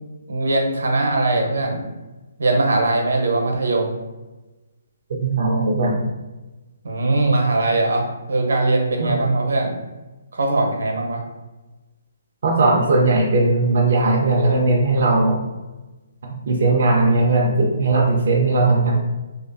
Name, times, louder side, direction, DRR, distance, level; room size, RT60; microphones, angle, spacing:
voice 1, 0.3-1.9 2.4-4.0 6.8-9.7 10.3-11.2, right 2 dB, 80° right, 2 dB, 0.7 m, -20 dB
voice 2, 5.2-6.0 9.0-9.2 12.4-15.4 16.3-19.0, right 2 dB, 45° right, -1 dB, 0.4 m, -18 dB
2.5 x 2.4 x 2.5 m, 1.1 s
hypercardioid pair, 175°, 0 cm